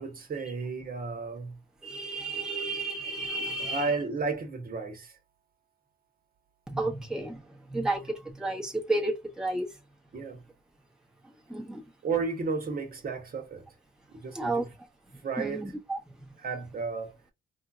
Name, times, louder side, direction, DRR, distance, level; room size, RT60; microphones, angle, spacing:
voice 1, 0.0-1.6 3.6-5.1 10.1-10.4 12.0-13.7 14.1-14.6 15.2-15.6 16.4-17.2, right 4 dB, 50° right, 1.2 m, -33 dB
voice 2, 1.8-3.9 6.7-7.4 7.7-9.7 11.5-11.8 14.3-14.7 15.4-16.0, right 2 dB, 5° right, 1.0 m, -32 dB
3.6 x 2.7 x 2.4 m
cardioid pair, 90°, 20 cm